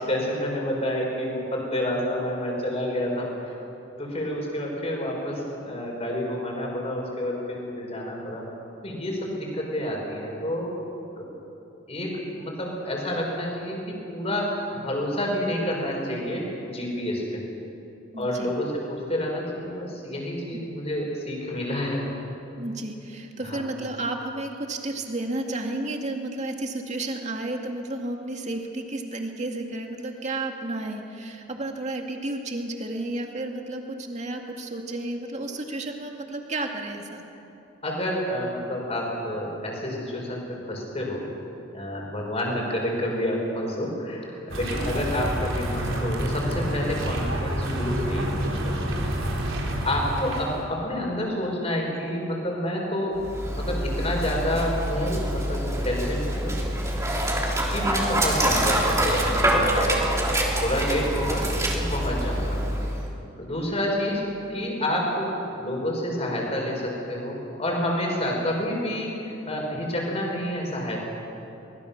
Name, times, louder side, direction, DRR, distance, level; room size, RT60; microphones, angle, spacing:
voice 1, 0.1-3.6 4.0-8.4 8.8-10.7 11.2-11.3 11.9-17.4 18.2-22.2 23.4-23.6 37.8-41.2 41.7-49.1 49.8-53.2 53.6-56.6 57.7-59.9 60.5-62.6 63.4-64.2 64.5-71.0, left 1 dB, 30° left, -1 dB, 5.9 m, -29 dB
voice 2, 18.1-18.5 22.5-37.2, right 2 dB, 35° right, 2 dB, 2.2 m, -32 dB
sound 1, 44.5-50.6, equal, 85° right, 4.0 m, -28 dB
Dog, 53.2-63.1, right 1 dB, 15° right, 3.3 m, -25 dB
24.5 x 20.5 x 7.2 m, 2.9 s
head